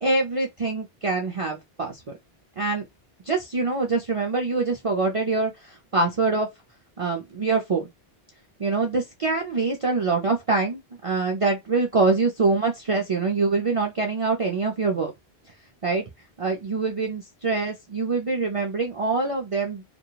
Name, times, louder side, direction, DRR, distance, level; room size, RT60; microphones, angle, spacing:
voice 1, 0.0-2.0 2.6-2.8 3.3-6.5 7.0-7.9 8.6-15.1 15.8-16.0 16.4-19.8, right 3 dB, 45° right, 0.4 m, -24 dB
2.9 x 2.2 x 2.2 m
omnidirectional pair, 1.0 m